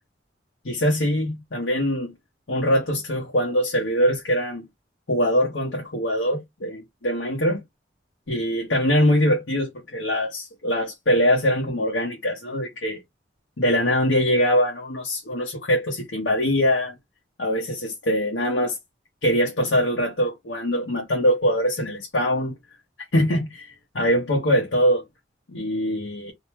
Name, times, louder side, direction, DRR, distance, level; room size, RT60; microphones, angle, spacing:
voice 1, 0.6-2.1 2.5-4.7 5.1-7.6 8.3-13.0 13.6-16.9 17.4-18.8 19.2-22.5 23.1-25.0 25.5-26.3, equal, 80° left, 0.9 m, -23 dB
2.7 x 2.1 x 3.1 m
head